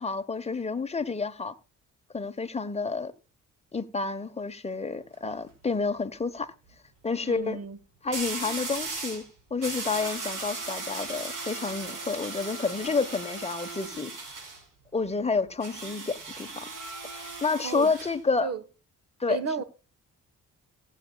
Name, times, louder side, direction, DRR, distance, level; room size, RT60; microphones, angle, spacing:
voice 1, 0.0-1.5 2.1-3.1 3.7-6.5 7.0-7.6 8.0-9.2 9.5-14.1 14.9-16.7 17.1-18.5 19.2-19.4, left 4 dB, 20° left, 1.0 m, -29 dB
sound 1, 5.0-5.3 8.1-9.3 9.6-14.6 15.6-18.2, right 3 dB, 75° right, 5.0 m, -37 dB
voice 2, 7.2-7.8 17.6-17.9 18.4-18.6 19.3-19.6, right 5 dB, 50° right, 1.2 m, -32 dB
18.0 x 8.3 x 2.3 m
cardioid pair, 75°, 32 cm